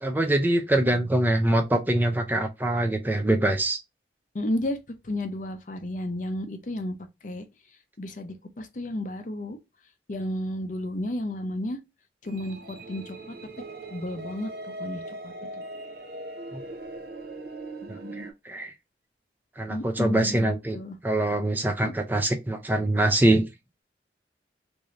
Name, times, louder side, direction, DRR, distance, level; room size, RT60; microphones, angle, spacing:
voice 1, 0.0-3.8 16.5-16.6 18.2-18.7 19.6-20.8 21.0-23.5, right 1 dB, 10° right, 0.4 m, -24 dB
voice 2, 4.3-4.8 5.0-7.0 7.2-7.4 8.0-9.6 10.1-11.8 12.2-13.3 13.9-15.6 19.7-21.0 21.8-21.9, left 1 dB, 45° left, 0.5 m, -32 dB
sound 1, 12.2-18.3, right 2 dB, 55° right, 0.6 m, -40 dB
3.1 x 2.6 x 3.7 m
head